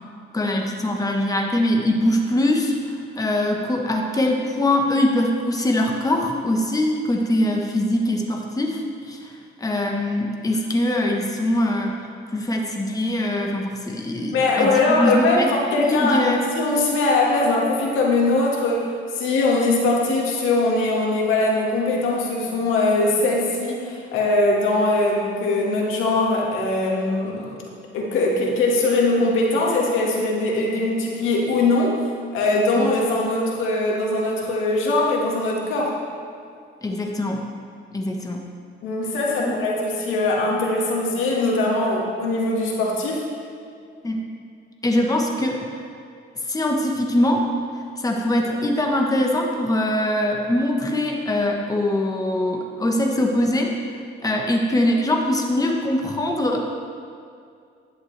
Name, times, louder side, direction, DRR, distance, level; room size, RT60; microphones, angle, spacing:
voice 1, 0.3-8.8 9.1-9.3 9.6-15.5 15.8-16.4 32.8-32.9 36.8-37.4 37.9-38.4 39.4-39.6 44.0-44.2 44.8-45.7 46.5-47.4 48.0-53.7 54.2-56.8, left 1 dB, 20° left, 1 dB, 1.2 m, -22 dB
voice 2, 14.3-27.6 27.9-32.0 32.3-36.0 38.8-43.3, left 2 dB, 90° left, -2 dB, 1.8 m, -21 dB
11.0 x 10.5 x 3.4 m, 2.3 s
cardioid pair, 90°, 20 cm